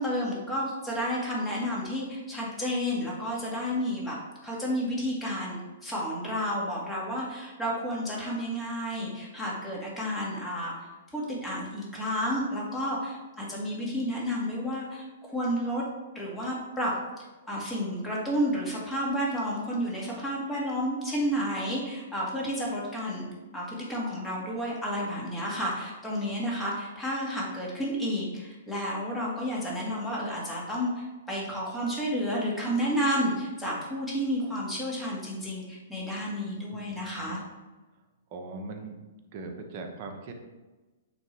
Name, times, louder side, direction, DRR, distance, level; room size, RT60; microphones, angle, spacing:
voice 1, 0.0-4.2 4.4-10.7 11.1-15.8 16.1-16.9 17.5-23.3 23.5-37.4, equal, 5° left, -5 dB, 2.1 m, -31 dB
voice 2, 36.7-37.4 38.3-39.0 39.3-40.3, right 3 dB, 45° right, 4 dB, 1.0 m, -40 dB
9.0 x 3.4 x 3.4 m, 1.2 s
hypercardioid pair, 130°, 0 cm